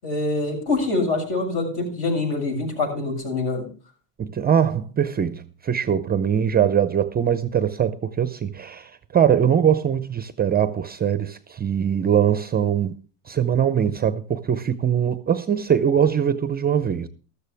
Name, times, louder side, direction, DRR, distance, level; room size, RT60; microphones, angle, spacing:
voice 1, 0.0-3.6, left 3 dB, 55° left, 7.6 m, -25 dB
voice 2, 4.2-12.9 13.3-17.1, right 8 dB, 20° right, 0.6 m, -22 dB
14.0 x 13.0 x 3.4 m
supercardioid pair, 120°, 43 cm